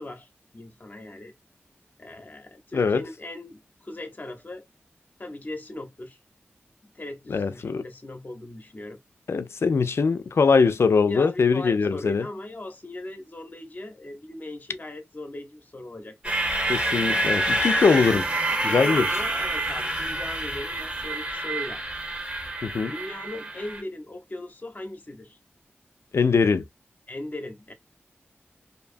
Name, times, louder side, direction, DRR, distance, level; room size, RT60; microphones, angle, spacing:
voice 1, 0.0-1.3 2.0-4.7 5.2-6.2 6.8-9.0 11.1-16.4 18.5-21.8 22.8-25.4 27.1-27.7, left 2 dB, 40° left, 0.7 m, -38 dB
voice 2, 2.7-3.0 7.3-7.8 9.3-12.2 16.7-18.3 18.6-19.0 22.6-22.9 26.1-26.6, left 5 dB, 70° left, 0.4 m, -22 dB
sound 1, 16.2-23.8, right 1 dB, 25° right, 1.1 m, -27 dB
2.6 x 2.3 x 2.5 m
wide cardioid pair, 55°, 5 cm